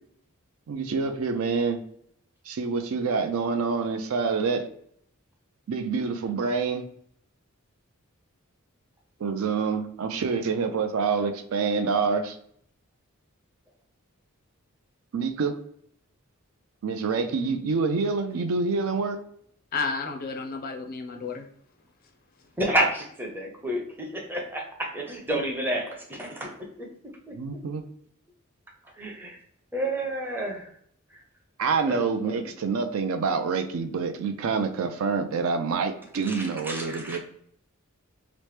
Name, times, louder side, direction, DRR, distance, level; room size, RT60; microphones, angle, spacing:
voice 1, 0.7-1.8 2.5-4.7 5.7-6.8 9.2-12.4 15.1-15.6 16.8-19.2 25.3-25.4 27.3-27.8 31.6-37.2, right 4 dB, 70° right, 7 dB, 0.4 m, -27 dB
voice 2, 19.7-21.5, left 4 dB, 45° left, 4 dB, 0.4 m, -31 dB
voice 3, 22.6-26.9 27.3-27.4 29.0-29.4 29.7-30.7 31.9-32.5 36.2-37.2, right 1 dB, 10° right, -1 dB, 0.6 m, -30 dB
2.9 x 2.1 x 3.1 m, 0.66 s
head